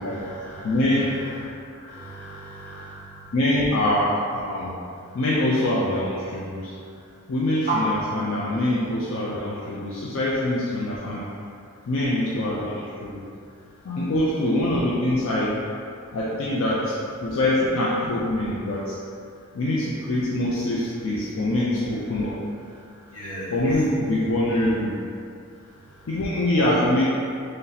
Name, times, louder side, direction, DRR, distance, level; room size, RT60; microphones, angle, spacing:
voice 1, 0.0-3.3 5.0-5.1 6.8-7.1 10.9-11.0 11.4-11.5 12.6-12.7 13.5-13.9 22.7-23.8 25.5-26.1, right 1 dB, 85° left, -8 dB, 1.2 m, -41 dB
voice 2, 0.6-1.2 3.3-4.8 5.1-6.7 7.3-11.3 11.9-13.3 13.8-15.6 16.1-16.9 17.2-19.0 19.5-22.4 23.5-25.0 26.1-27.0, left 1 dB, 65° left, -6 dB, 0.4 m, -24 dB
sound 1, 7.6-12.2, right 2 dB, 30° right, 0.6 m, -32 dB
3.2 x 2.7 x 3.9 m, 2.5 s
head